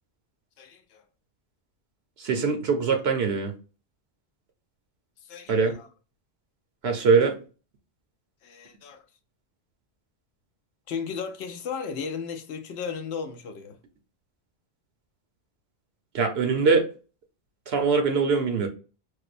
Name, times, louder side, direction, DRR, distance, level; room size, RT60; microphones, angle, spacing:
voice 1, 0.6-1.0 5.2-5.9 8.4-9.0 10.9-13.8, left 6 dB, 90° left, 0.8 m, -35 dB
voice 2, 2.2-3.5 5.5-5.8 6.8-7.4 16.1-16.9 17.7-18.7, right 5 dB, 80° right, 1.0 m, -22 dB
4.6 x 2.1 x 2.5 m
omnidirectional pair, 1.0 m